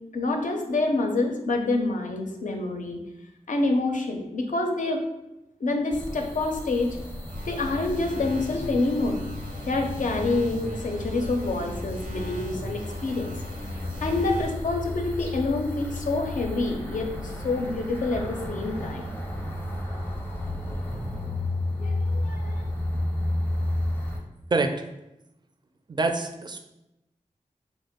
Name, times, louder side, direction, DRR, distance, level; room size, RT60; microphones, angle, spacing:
voice 1, 0.1-3.0 3.5-5.0 5.6-7.0 7.5-9.2 9.7-13.3 14.0-19.0 21.8-22.6, left 2 dB, 70° left, 3 dB, 0.5 m, -27 dB
sound 1, 5.9-24.2, left 1 dB, 15° left, 0.6 m, -32 dB
sound 2, 7.2-14.7, equal, 85° right, 0.7 m, -39 dB
voice 2, 25.9-26.6, right 3 dB, 35° right, 6 dB, 0.4 m, -25 dB
3.0 x 2.0 x 3.4 m, 0.92 s
cardioid pair, 45°, 14 cm